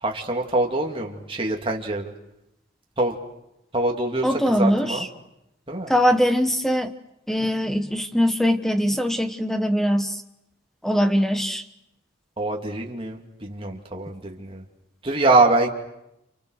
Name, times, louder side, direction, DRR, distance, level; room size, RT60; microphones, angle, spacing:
voice 1, 0.0-2.1 3.0-3.1 3.7-5.1 5.7-5.9 12.4-14.6 15.0-15.7, right 2 dB, 25° right, 1 dB, 2.8 m, -24 dB
voice 2, 4.2-5.1 5.9-6.9 7.3-10.2 10.8-11.6, equal, ahead, 8 dB, 1.2 m, -21 dB
29.5 x 29.0 x 6.6 m, 0.85 s
head